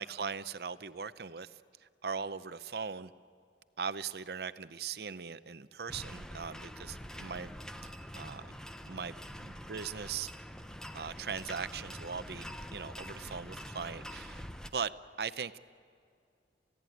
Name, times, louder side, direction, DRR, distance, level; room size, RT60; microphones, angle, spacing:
voice 1, 0.0-1.5 2.0-3.1 3.8-7.5 7.8-8.4 8.9-10.3 10.9-14.4 14.7-14.9 15.2-15.6, right 6 dB, 60° right, 14 dB, 0.6 m, -39 dB
sound 1, 5.9-14.7, equal, 5° left, 0.7 m, -45 dB
28.5 x 16.5 x 9.2 m, 2.3 s
head